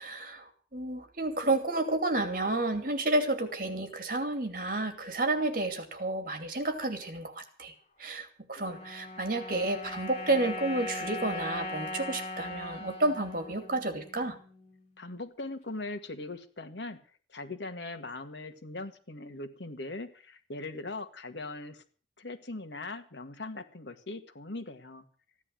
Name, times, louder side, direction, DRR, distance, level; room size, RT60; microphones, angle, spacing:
voice 1, 0.0-7.7 8.0-14.4, right 2 dB, 50° right, 7 dB, 2.7 m, -31 dB
sound 1, 8.6-15.0, left 2 dB, 40° left, 3.6 m, -40 dB
voice 2, 15.0-17.0 17.3-21.8 22.2-25.0, left 2 dB, 85° left, 8 dB, 1.9 m, -40 dB
15.5 x 10.0 x 7.6 m, 0.41 s
head